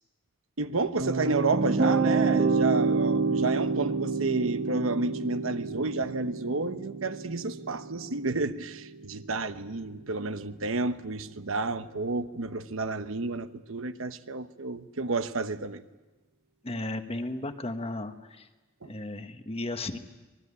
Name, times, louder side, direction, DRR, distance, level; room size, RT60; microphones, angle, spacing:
sound 1, 0.6-9.8, right 4 dB, 55° right, 2.0 m, -29 dB
voice 1, 0.6-15.8 18.8-18.9, right 3 dB, 75° right, 1.0 m, -31 dB
voice 2, 16.6-18.5 18.8-20.0, left 2 dB, 30° left, 1.3 m, -35 dB
25.5 x 19.5 x 9.8 m
head